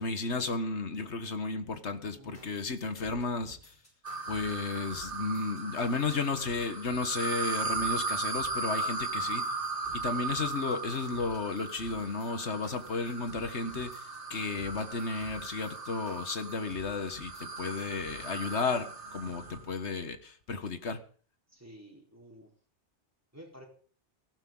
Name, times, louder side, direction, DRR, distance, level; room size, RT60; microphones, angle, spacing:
voice 1, 0.0-3.6 4.3-9.5 9.9-14.0 14.3-21.0, left 3 dB, 75° left, 9 dB, 1.8 m, -33 dB
voice 2, 2.1-2.5 21.5-22.5 23.3-23.7, right 1 dB, 15° right, 0 dB, 4.2 m, -51 dB
sound 1, 2.3-19.2, left 1 dB, 50° left, 5.6 m, -55 dB
sound 2, 4.0-19.7, right 3 dB, 80° right, 2.7 m, -37 dB
18.5 x 14.0 x 3.9 m, 0.43 s
omnidirectional pair, 1.2 m